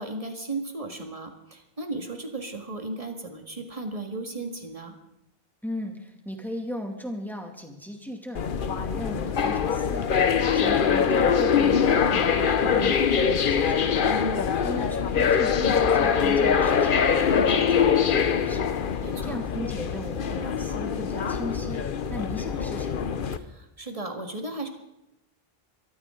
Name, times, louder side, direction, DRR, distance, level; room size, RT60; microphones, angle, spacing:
voice 1, 0.0-4.9 14.1-14.3 19.0-19.4 23.4-24.7, right 2 dB, 35° right, 4 dB, 2.0 m, -35 dB
voice 2, 5.6-8.4 8.8-10.2 10.5-13.9 14.4-17.0 17.3-18.8 19.2-21.8 22.1-23.2, equal, ahead, 2 dB, 2.4 m, -37 dB
sound 1, 8.3-23.4, left 7 dB, 60° left, 1.0 m, -23 dB
23.5 x 13.5 x 3.8 m, 0.90 s
omnidirectional pair, 1.0 m